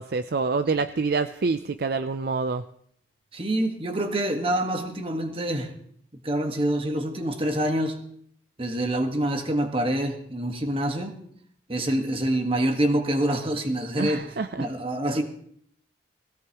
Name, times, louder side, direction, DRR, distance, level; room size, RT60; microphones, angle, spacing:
voice 1, 0.0-2.6 14.0-14.7, right 4 dB, 55° right, 10 dB, 0.5 m, -26 dB
voice 2, 3.3-5.7 6.2-8.0 8.6-11.2 11.7-15.2, right 1 dB, 30° right, 5 dB, 1.5 m, -26 dB
19.5 x 17.0 x 3.0 m, 0.64 s
head